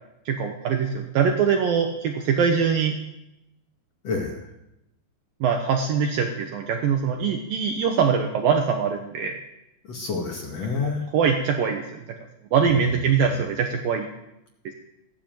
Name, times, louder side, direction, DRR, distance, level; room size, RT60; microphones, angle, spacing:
voice 1, 0.3-2.9 5.4-9.3 11.1-12.0 12.5-14.1 14.7-14.8, right 6 dB, 80° right, 4 dB, 2.0 m, -23 dB
voice 2, 4.0-4.5 9.8-11.1 12.7-13.2, left 4 dB, 55° left, 0 dB, 1.9 m, -29 dB
17.0 x 10.5 x 7.7 m, 0.88 s
omnidirectional pair, 5.7 m